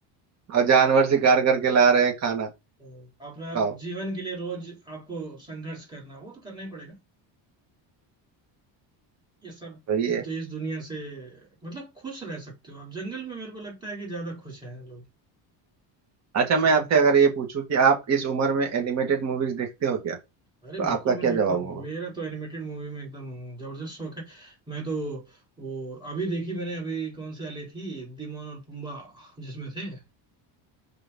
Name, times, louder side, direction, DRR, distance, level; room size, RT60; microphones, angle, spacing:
voice 1, 0.5-2.5 3.5-3.7 9.9-10.3 16.3-20.2 20.8-21.8, right 5 dB, 35° right, 1.9 m, -22 dB
voice 2, 2.8-7.0 9.4-15.0 16.6-16.9 20.6-30.0, right 3 dB, 10° right, 3.5 m, -36 dB
5.4 x 4.0 x 5.4 m
cardioid pair, 170°, 46 cm